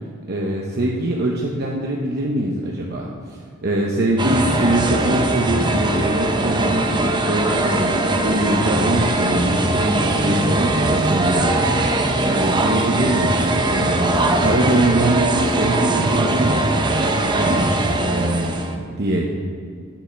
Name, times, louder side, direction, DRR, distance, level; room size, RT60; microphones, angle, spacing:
voice 1, 0.3-11.5 12.2-13.3 13.7-16.6 17.2-19.3, right 1 dB, 55° right, -2 dB, 0.9 m, -23 dB
sound 1, 4.2-18.8, right 2 dB, 20° right, 0.7 m, -20 dB
10.0 x 5.5 x 6.6 m, 2.2 s
head